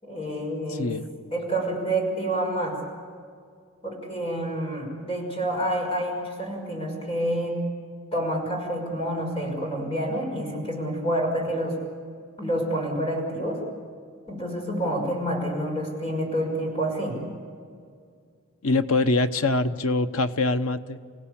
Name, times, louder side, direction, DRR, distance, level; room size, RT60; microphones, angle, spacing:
voice 1, 0.0-0.9 1.3-2.8 3.8-7.6 8.1-11.8 12.4-13.6 14.3-17.3, right 1 dB, 25° left, 1 dB, 5.8 m, -28 dB
voice 2, 0.7-1.1 18.6-21.0, left 2 dB, 85° left, 9 dB, 1.0 m, -24 dB
28.5 x 16.5 x 8.6 m, 2.2 s
head